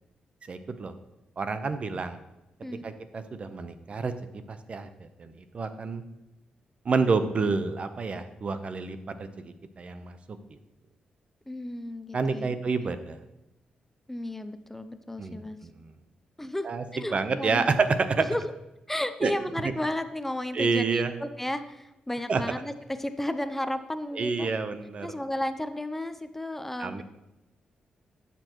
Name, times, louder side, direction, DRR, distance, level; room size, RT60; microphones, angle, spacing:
voice 1, 0.5-0.9 1.4-2.2 2.8-4.1 4.5-6.0 6.8-10.2 10.5-10.6 12.1-13.2 15.2-15.7 16.6-16.8 17.1-18.3 19.2-19.3 20.5-21.1 22.3-22.4 24.1-25.1 26.8-27.0, right 4 dB, 45° right, 10 dB, 0.8 m, -28 dB
voice 2, 11.5-12.5 12.8-12.9 14.1-15.6 16.4-17.7 18.2-18.5 18.9-24.5 25.0-27.0, left 1 dB, 10° left, 10 dB, 0.5 m, -33 dB
12.0 x 6.9 x 3.0 m, 0.95 s
cardioid pair, 75°, 3 cm